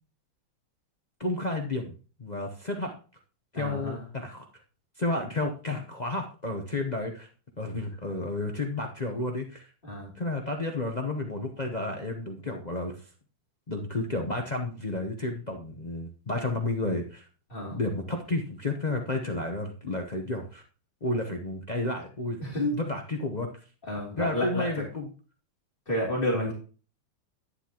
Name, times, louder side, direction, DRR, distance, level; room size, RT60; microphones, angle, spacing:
voice 1, 1.2-1.9 2.2-2.9 3.5-4.4 5.0-7.3 7.6-9.7 10.1-12.9 13.7-17.3 17.7-20.6 21.0-22.4 22.7-23.5 24.2-25.1 26.3-26.5, left 2 dB, 50° left, 2 dB, 0.5 m, -31 dB
voice 2, 3.5-4.0 9.8-10.1 17.5-17.8 22.4-22.8 23.8-24.8 25.9-26.5, left 1 dB, 25° left, -4 dB, 3.0 m, -30 dB
11.0 x 9.7 x 2.9 m, 0.38 s
omnidirectional pair, 2.2 m